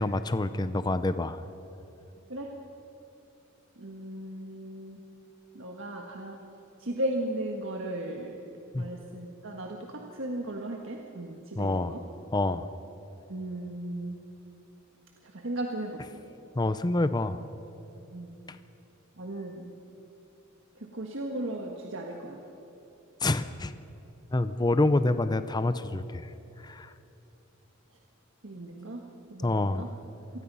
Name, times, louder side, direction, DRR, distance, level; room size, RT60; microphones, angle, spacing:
voice 1, 0.0-1.4 8.7-8.9 11.6-11.9 12.3-12.7 16.6-17.4 18.5-18.6 23.2-23.7 24.3-26.3 26.6-26.9 29.4-29.9, left 2 dB, 20° left, 12 dB, 0.6 m, -27 dB
voice 2, 3.8-5.0 5.5-6.4 6.8-8.4 8.8-12.0 13.3-14.2 15.2-16.2 18.1-18.4 19.2-19.7 20.7-22.4 28.4-29.0 29.3-29.9, right 1 dB, 65° right, 1 dB, 1.7 m, -36 dB
27.0 x 19.5 x 5.6 m, 3.0 s
head